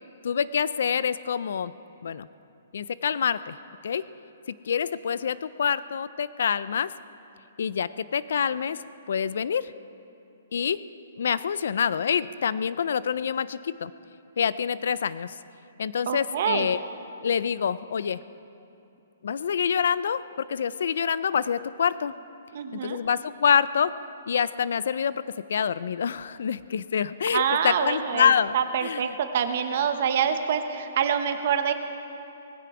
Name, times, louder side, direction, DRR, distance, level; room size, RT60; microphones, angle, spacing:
voice 1, 0.2-1.7 2.0-2.3 2.7-3.6 3.8-4.0 4.5-6.9 7.6-8.8 9.1-9.7 10.5-10.8 11.2-13.9 14.4-15.3 15.8-16.8 17.2-18.2 19.2-22.1 22.8-23.9 24.3-25.2 25.5-28.5 28.8-29.0, left 7 dB, 60° left, 17 dB, 0.4 m, -26 dB
voice 2, 16.1-16.7 22.5-23.0 27.3-31.7, right 8 dB, 40° right, 8 dB, 0.9 m, -26 dB
19.0 x 15.0 x 4.9 m, 2.8 s
hypercardioid pair, 180°, 0 cm